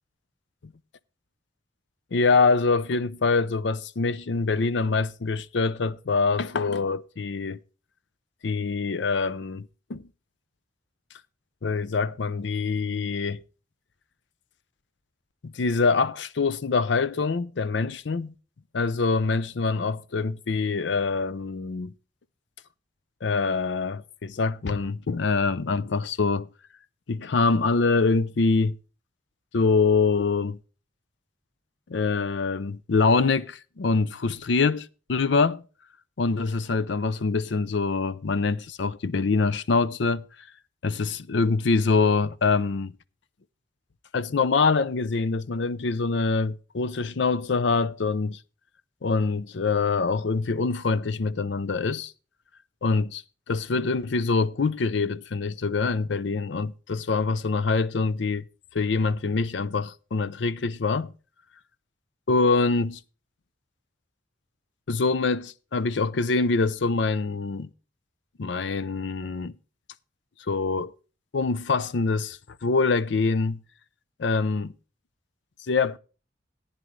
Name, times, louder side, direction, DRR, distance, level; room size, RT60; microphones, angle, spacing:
voice 1, 2.1-7.6 8.4-10.1 11.6-13.4 15.4-18.3 18.7-21.9 23.2-26.5 27.1-28.8 29.5-30.6 31.9-35.6 36.2-40.2 40.8-42.9 44.1-48.4 49.0-52.1 52.8-53.2 53.5-58.4 58.7-61.1 62.3-63.0 64.9-67.7 68.4-69.5 70.5-70.9 71.3-73.6 74.2-74.7 75.7-76.0, left 4 dB, 70° left, 0.5 m, -25 dB
15.0 x 9.6 x 3.1 m
head